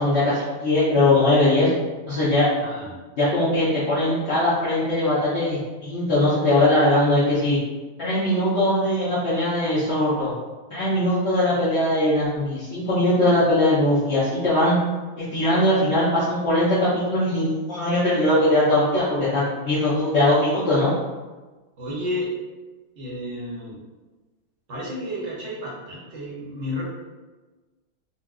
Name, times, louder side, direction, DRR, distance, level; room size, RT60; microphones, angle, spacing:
voice 1, 0.0-1.7 2.1-2.5 3.2-7.6 8.0-10.3 10.7-14.8 15.2-20.9, left 1 dB, 75° left, -10 dB, 0.6 m, -20 dB
voice 2, 2.6-3.0 21.8-22.3 23.0-23.8 24.7-26.8, left 1 dB, 50° right, -5 dB, 0.9 m, -31 dB
4.3 x 2.2 x 2.4 m, 1.2 s
omnidirectional pair, 2.2 m